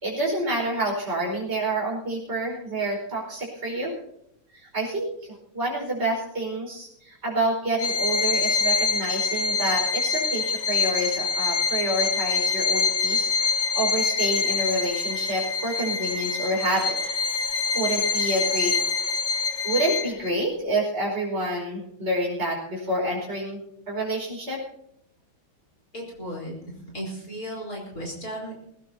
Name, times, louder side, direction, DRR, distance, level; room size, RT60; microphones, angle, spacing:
voice 1, 0.0-3.9 4.5-17.0 17.3-18.7 19.6-23.6 23.9-24.6, right 1 dB, 30° right, -2 dB, 5.3 m, -28 dB
Bowed string instrument, 7.8-20.3, left 5 dB, 65° left, 1.9 m, -25 dB
voice 2, 25.9-26.6 26.9-28.6, equal, 40° left, -2 dB, 4.6 m, -35 dB
20.5 x 19.0 x 2.8 m, 0.74 s
omnidirectional pair, 2.3 m